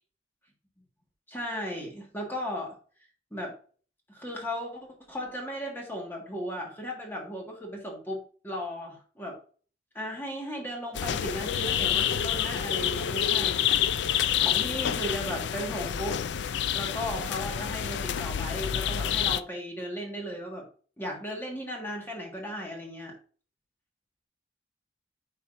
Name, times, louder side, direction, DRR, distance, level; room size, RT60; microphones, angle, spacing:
voice 1, 1.3-2.8 3.3-3.5 4.1-9.4 9.9-13.6 14.4-16.2 16.7-20.7 21.0-23.1, equal, 10° left, -1 dB, 1.6 m, -36 dB
sound 1, 10.9-19.4, left 9 dB, 80° left, 0.4 m, -28 dB
10.0 x 4.1 x 2.5 m, 0.41 s
head